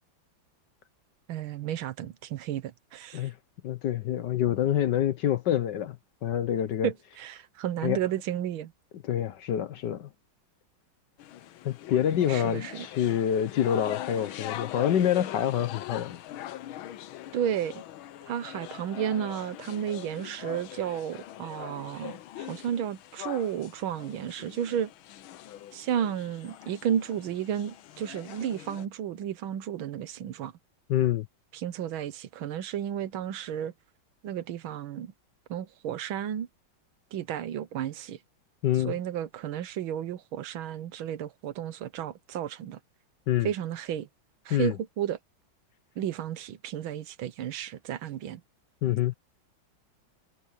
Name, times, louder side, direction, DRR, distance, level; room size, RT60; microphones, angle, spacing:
voice 1, 1.3-3.3 6.8-8.7 12.3-12.9 17.3-17.8 18.3-24.9 25.7-30.5 31.5-33.7 34.2-35.1 35.5-36.5 37.1-38.2 38.8-42.8 43.4-44.1 44.5-45.2 46.0-48.4, right 10 dB, 80° right, 1.7 m, -32 dB
voice 2, 3.6-6.0 6.2-6.9 7.8-8.0 9.0-10.1 11.6-16.2 30.9-31.3 38.6-39.0 43.3-43.5 44.5-44.8 48.8-49.1, left 10 dB, 65° left, 1.4 m, -26 dB
sound 1, 11.2-28.9, left 13 dB, 80° left, 1.6 m, -42 dB
omnidirectional pair, 2.2 m